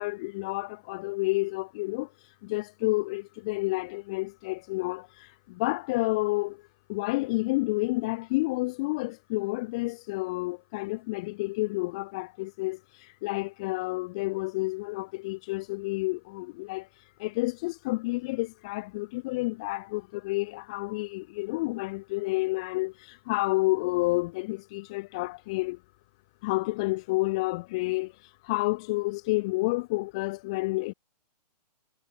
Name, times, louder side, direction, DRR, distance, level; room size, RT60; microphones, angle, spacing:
voice 1, 0.0-2.1 2.4-6.6 6.9-16.9 17.2-25.8 26.4-28.1 28.4-30.9, left 23 dB, 10° left, 0.5 m, -30 dB
hypercardioid pair, 180°, 21 cm